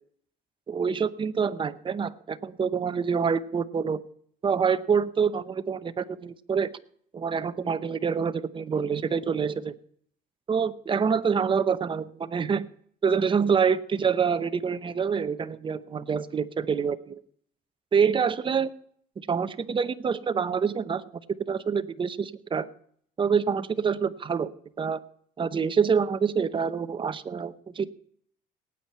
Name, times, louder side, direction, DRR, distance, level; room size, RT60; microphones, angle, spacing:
voice 1, 0.7-4.0 4.4-6.7 7.1-9.7 10.5-12.7 13.0-17.2 17.9-18.7 19.2-21.0 21.5-22.7 23.2-24.5 24.8-25.0 25.4-27.9, right 6 dB, 30° right, 12 dB, 0.8 m, -26 dB
18.5 x 9.0 x 4.4 m, 0.62 s
cardioid pair, 110°, 17 cm